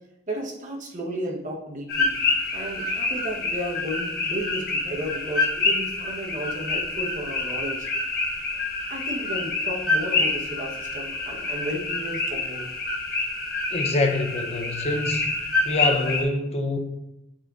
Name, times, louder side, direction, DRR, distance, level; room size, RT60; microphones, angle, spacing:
voice 1, 0.3-2.2 2.5-7.9 8.9-12.7, equal, 45° right, 1.1 m, -33 dB
sound 1, 1.9-16.2, left 3 dB, 60° left, 1.0 m, -27 dB
voice 2, 13.7-15.3 15.6-16.8, left 2 dB, 35° left, 0.7 m, -25 dB
9.4 x 4.3 x 2.5 m
head